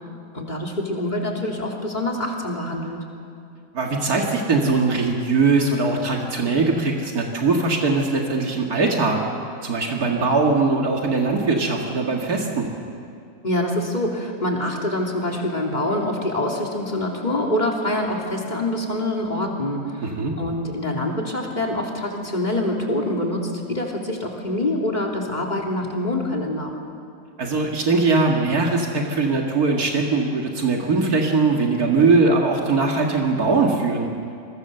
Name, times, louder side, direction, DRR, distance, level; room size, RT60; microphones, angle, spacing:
voice 1, 0.3-3.0 13.4-20.0 20.4-26.7, left 1 dB, 30° left, 0 dB, 3.2 m, -25 dB
voice 2, 3.7-9.2 9.6-12.7 20.0-20.3 27.4-34.1, right 3 dB, 80° right, 0 dB, 2.6 m, -21 dB
28.0 x 22.5 x 6.9 m, 2.4 s
omnidirectional pair, 1.6 m